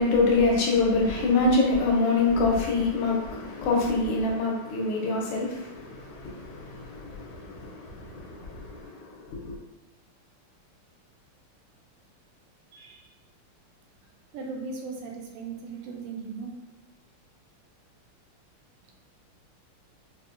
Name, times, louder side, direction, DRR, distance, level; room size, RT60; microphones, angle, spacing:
voice 1, 0.0-9.6, left 3 dB, 85° left, -2 dB, 1.7 m, -25 dB
voice 2, 12.7-13.1 14.3-16.6, right 4 dB, 85° right, 0 dB, 1.6 m, -38 dB
5.0 x 2.1 x 2.5 m, 1.1 s
omnidirectional pair, 2.4 m